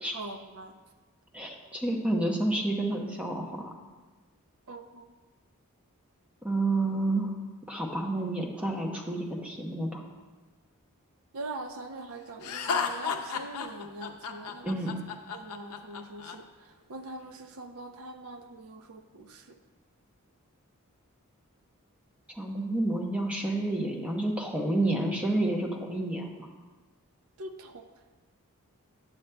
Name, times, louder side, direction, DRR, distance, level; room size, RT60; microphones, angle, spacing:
voice 1, 0.1-0.7 4.7-5.1 11.3-14.8 15.3-16.4 16.9-19.4 27.4-27.9, right 2 dB, 70° right, 7 dB, 0.5 m, -42 dB
voice 2, 1.3-3.7 6.4-7.3 7.7-10.0 14.6-15.0 22.4-26.5, right 2 dB, 5° right, 0 dB, 0.7 m, -29 dB
Laughter, 12.4-16.3, left 6 dB, 90° left, 0.6 m, -33 dB
9.1 x 7.3 x 2.2 m, 1.3 s
head